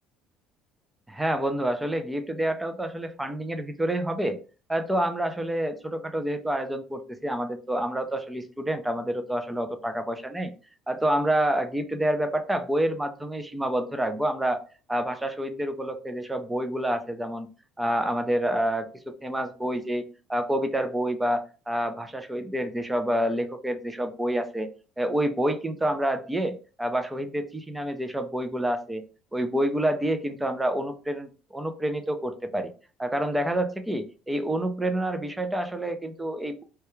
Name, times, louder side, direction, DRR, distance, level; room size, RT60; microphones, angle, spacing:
voice 1, 1.1-4.4 4.7-10.5 10.9-14.6 14.9-17.5 17.8-20.0 20.3-24.7 25.0-29.0 29.3-32.7 33.0-36.6, right 1 dB, 10° right, 8 dB, 0.4 m, -28 dB
2.2 x 2.2 x 2.9 m, 0.36 s
cardioid pair, 115°, 0 cm